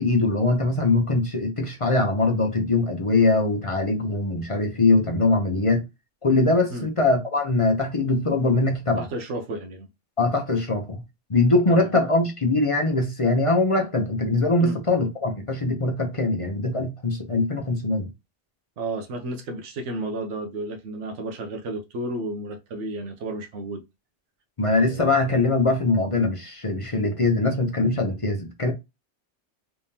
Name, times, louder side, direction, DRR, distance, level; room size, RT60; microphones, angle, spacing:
voice 1, 0.0-5.8 6.2-9.0 10.2-11.0 11.3-18.1 24.6-28.7, left 2 dB, 35° left, 0.7 m, -22 dB
voice 2, 9.0-9.9 11.7-11.9 14.6-14.8 18.8-23.8 24.7-25.0, right 2 dB, 80° right, 1.1 m, -32 dB
3.5 x 3.4 x 2.8 m
omnidirectional pair, 1.2 m